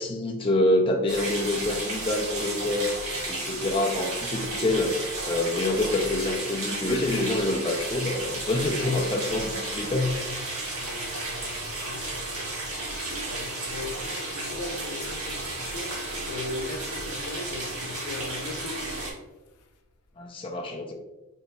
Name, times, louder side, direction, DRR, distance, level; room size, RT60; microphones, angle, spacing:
voice 1, 0.0-2.9 3.3-5.0 5.2-10.2 20.2-20.9, left 2 dB, 25° left, 0.4 m, -26 dB
sound 1, 1.1-19.1, right 2 dB, 75° right, 1.5 m, -33 dB
voice 2, 10.7-12.6 13.3-18.9 19.5-19.7, left 2 dB, 90° left, 0.7 m, -39 dB
5.4 x 3.9 x 2.2 m
head